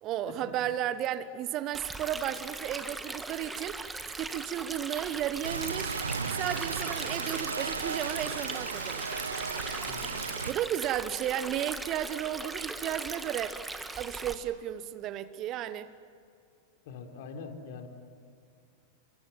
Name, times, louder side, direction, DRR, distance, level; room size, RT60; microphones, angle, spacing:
voice 1, 0.0-3.9 4.1-6.0 6.3-9.1 10.5-13.6 13.9-15.9, right 11 dB, 35° right, 1.2 m, -33 dB
Stream, 1.7-14.3, right 2 dB, 10° right, 1.8 m, -39 dB
Rain, 5.4-10.5, right 4 dB, 75° right, 1.0 m, -35 dB
voice 2, 9.9-10.2 16.8-17.9, left 5 dB, 55° left, 3.7 m, -43 dB
29.5 x 25.5 x 7.6 m
figure-of-eight pair, 90°, 0 cm